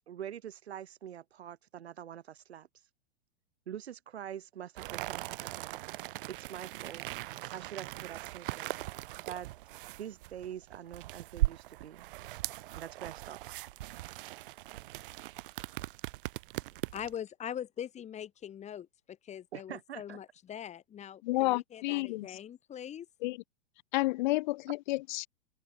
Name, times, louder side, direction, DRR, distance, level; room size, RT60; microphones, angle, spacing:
voice 1, 0.1-2.7 3.7-5.8 6.3-7.0 7.5-8.8 9.3-9.5 10.0-12.1 12.7-13.4 19.5-20.2, right 10 dB, 80° right, 1.4 m, -44 dB
sound 1, 4.8-17.2, right 17 dB, 55° right, 1.0 m, -39 dB
voice 2, 16.9-23.1, left 9 dB, 20° left, 1.8 m, -42 dB
voice 3, 21.2-22.4 23.2-23.4 23.9-25.3, left 20 dB, 50° left, 0.4 m, -30 dB
open air
hypercardioid pair, 115°, 32 cm